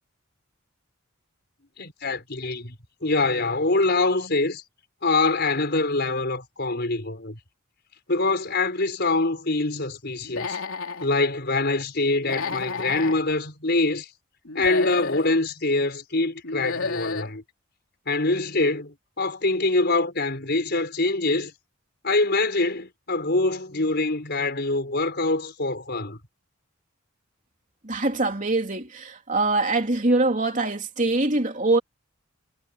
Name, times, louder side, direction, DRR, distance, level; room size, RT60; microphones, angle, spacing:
voice 1, 2.0-2.8 3.0-4.6 5.0-7.4 8.1-10.6 11.0-14.1 14.5-17.4 18.1-21.5 22.0-26.2, left 2 dB, 50° left, 5.3 m, -24 dB
Human voice / Animal, 10.2-11.1 12.2-13.2 14.5-15.3 16.4-17.3, left 4 dB, 75° left, 3.5 m, -31 dB
voice 2, 27.8-31.8, right 2 dB, 35° right, 3.2 m, -23 dB
head